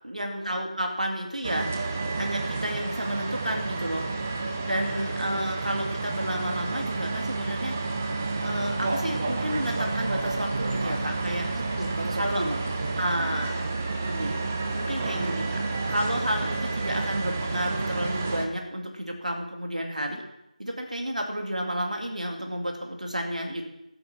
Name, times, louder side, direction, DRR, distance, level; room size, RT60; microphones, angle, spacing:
voice 1, 0.0-1.7 2.2-4.1 4.7-7.7 8.4-11.5 12.2-12.4 13.0-13.6 14.1-14.3 14.7-15.6 15.9-20.2 20.6-23.6, equal, 70° right, 2 dB, 2.4 m, -31 dB
sound 1, 1.4-18.5, right 3 dB, 10° right, 0.4 m, -30 dB
voice 2, 11.5-13.5, right 1 dB, 55° right, 6 dB, 1.3 m, -35 dB
14.0 x 9.0 x 4.4 m, 0.87 s
figure-of-eight pair, 170°, 4 cm